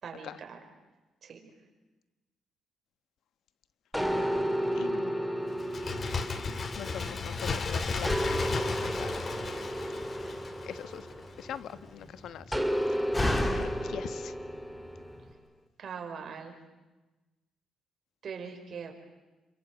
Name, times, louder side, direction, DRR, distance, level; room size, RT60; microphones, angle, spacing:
voice 1, 0.0-0.6 1.2-1.5 15.8-16.5 18.2-18.9, right 6 dB, 55° right, 4 dB, 5.3 m, -41 dB
sound 1, 3.9-7.5 8.0-11.8 12.5-15.2, equal, ahead, 2.6 m, -33 dB
voice 2, 4.2-5.2 6.7-9.1 10.6-11.1 11.4-12.5 13.5-14.3, left 9 dB, 75° left, 13 dB, 1.2 m, -42 dB
Bird, 5.6-11.1 11.4-11.5, left 4 dB, 40° left, 2.1 m, -35 dB
Slam, 8.2-15.3, left 1 dB, 20° left, 3.0 m, -38 dB
28.5 x 25.0 x 8.0 m, 1.1 s
cardioid pair, 90°, 0 cm